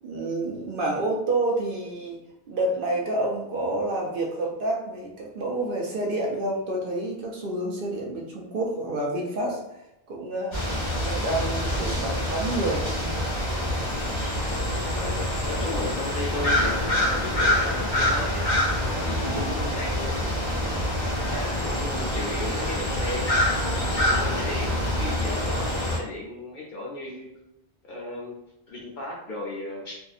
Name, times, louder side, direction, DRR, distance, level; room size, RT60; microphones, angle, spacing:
voice 1, 0.0-2.2 2.5-9.8 10.1-10.6 11.0-12.9 19.2-19.6, right 2 dB, 60° right, -1 dB, 0.7 m, -28 dB
sound 1, 10.5-26.0, left 1 dB, 40° left, 1.0 m, -26 dB
voice 2, 14.9-18.6 18.9-20.3 21.1-23.6 24.0-27.3 27.8-28.4 28.7-30.0, left 2 dB, 55° left, -2 dB, 0.6 m, -35 dB
2.6 x 2.3 x 2.3 m, 0.84 s
omnidirectional pair, 1.1 m